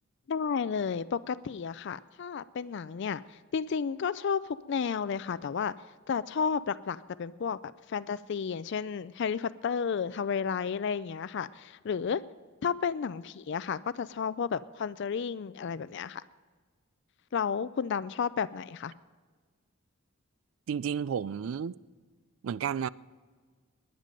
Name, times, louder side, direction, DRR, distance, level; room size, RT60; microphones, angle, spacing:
voice 1, 0.3-3.2 3.5-4.4 4.7-5.7 6.1-7.6 7.9-12.2 12.6-16.2 17.3-18.9, left 6 dB, 55° left, 0.4 m, -32 dB
voice 2, 20.7-21.8 22.4-22.9, right 7 dB, 70° right, 0.3 m, -32 dB
19.5 x 10.5 x 5.2 m
head